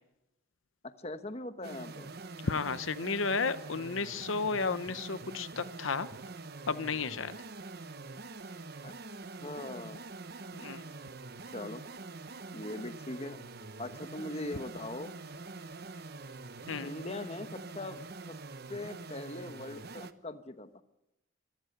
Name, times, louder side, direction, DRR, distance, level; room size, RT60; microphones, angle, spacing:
voice 1, 0.8-2.1 8.8-8.9 9.4-10.0 11.5-11.8 12.5-13.4 13.8-15.1 16.8-18.4 18.7-20.8, left 2 dB, 30° left, 10 dB, 1.1 m, -41 dB
sound 1, 1.6-20.1, right 3 dB, 50° right, 1.0 m, -45 dB
voice 2, 2.4-6.1 6.7-7.3 10.5-10.8 16.7-16.9, left 4 dB, 75° left, 13 dB, 0.8 m, -33 dB
24.0 x 17.0 x 6.7 m, 0.93 s
head